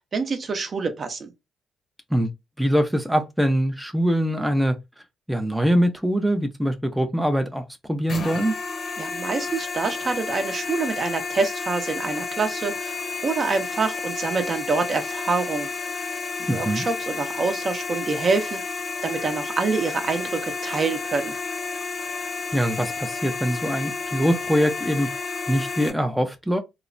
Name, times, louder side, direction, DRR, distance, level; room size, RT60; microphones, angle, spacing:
voice 1, 0.1-1.3 9.0-15.7 16.5-18.6 19.0-21.4, right 4 dB, 45° right, 0.6 m, -26 dB
voice 2, 2.6-4.8 5.3-8.5 16.5-16.9 22.5-25.1 25.5-26.6, equal, ahead, 0.5 m, -23 dB
sound 1, 8.1-25.9, left 4 dB, 50° left, 0.8 m, -31 dB
3.0 x 2.0 x 2.5 m
cardioid pair, 90°, 0 cm